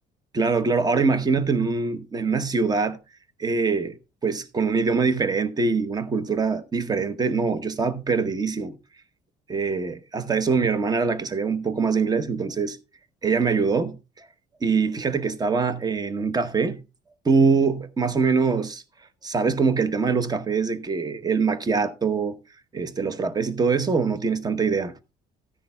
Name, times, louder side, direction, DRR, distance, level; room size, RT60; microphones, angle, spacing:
voice 1, 0.3-3.0 3.4-3.9 4.2-8.7 9.5-12.8 13.2-14.3 14.6-16.8 17.2-18.8 19.2-22.4 22.7-24.9, right 4 dB, 25° right, 0.9 m, -23 dB
14.0 x 10.0 x 2.2 m
cardioid pair, 110°, 17 cm